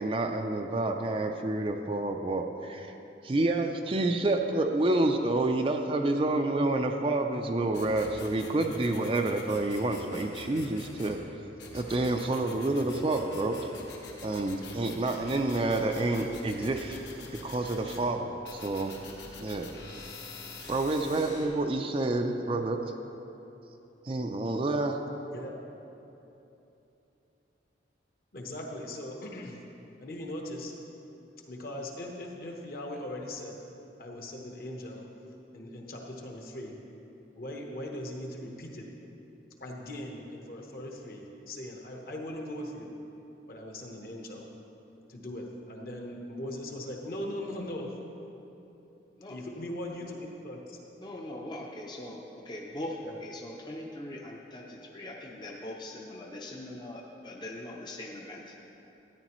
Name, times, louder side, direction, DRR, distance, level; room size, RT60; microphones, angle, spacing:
voice 1, 0.0-2.9 3.2-11.2 11.7-13.6 14.2-17.0 17.4-18.9 19.4-19.7 20.7-22.8 24.1-25.0, right 2 dB, 30° right, 4 dB, 0.4 m, -28 dB
sound 1, 7.7-11.2 11.6-18.0 18.4-21.4, left 3 dB, 70° left, 1.4 m, -46 dB
voice 2, 28.3-29.6 30.0-30.7 31.5-33.6 34.0-35.1 35.5-36.8 37.4-38.9 39.6-42.9 43.5-44.5 45.1-47.9 49.3-50.8 53.0-53.1, left 1 dB, 50° left, 1 dB, 1.1 m, -39 dB
voice 3, 49.2-49.6 51.0-58.5, left 1 dB, 25° left, -1 dB, 0.6 m, -41 dB
13.0 x 9.7 x 3.1 m, 3.0 s
head